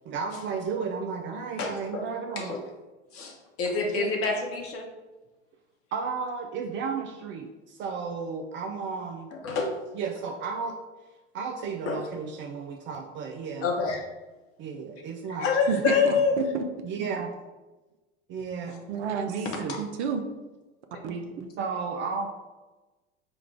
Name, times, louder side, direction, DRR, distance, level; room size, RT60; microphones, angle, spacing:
voice 1, 0.1-2.5 4.0-4.1 5.9-9.3 9.9-10.8 11.3-13.7 14.6-15.5 16.1-16.2 16.8-17.3 18.3-18.8 19.3-19.8 21.0-21.3 21.6-22.3, right 5 dB, 35° right, 4 dB, 0.4 m, -33 dB
voice 2, 1.6-2.0 2.4-2.6 3.1-4.9 9.3-9.7 11.9-12.0 13.6-14.0 15.4-16.3, left 5 dB, 40° left, 1 dB, 1.1 m, -26 dB
voice 3, 15.7-16.6 18.9-19.3 19.8-20.2 21.4-21.5, right 6 dB, 70° right, 6 dB, 0.7 m, -30 dB
5.0 x 2.4 x 4.4 m, 1.2 s
figure-of-eight pair, 75°, 36 cm